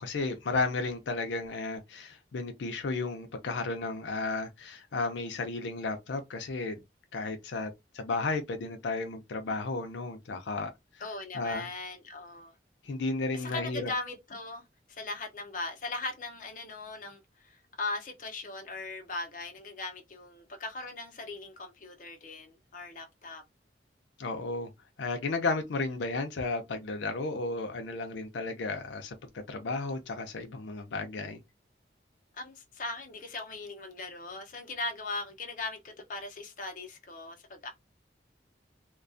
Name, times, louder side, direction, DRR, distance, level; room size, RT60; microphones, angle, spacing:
voice 1, 0.0-6.8 7.1-7.7 7.9-10.7 11.3-11.7 12.8-13.9 24.2-24.7 25.0-29.1 29.5-31.4, left 3 dB, 85° left, 0.5 m, -33 dB
voice 2, 11.0-12.5 13.3-23.4 32.4-37.7, left 3 dB, 45° left, 0.6 m, -39 dB
2.3 x 2.2 x 2.5 m
head